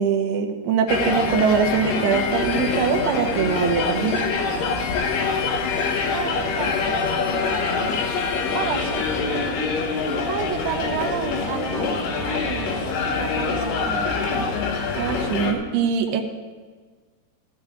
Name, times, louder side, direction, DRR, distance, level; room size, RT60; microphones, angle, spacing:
voice 1, 0.0-4.2 15.0-16.2, right 6 dB, 70° right, 3 dB, 2.3 m, -22 dB
sound 1, 0.9-15.5, left 4 dB, 70° left, 2.3 m, -25 dB
voice 2, 6.0-7.6 8.5-9.6 10.1-14.5 16.1-16.2, right 10 dB, 90° right, 6 dB, 2.7 m, -32 dB
15.0 x 14.0 x 2.5 m, 1.5 s
omnidirectional pair, 4.6 m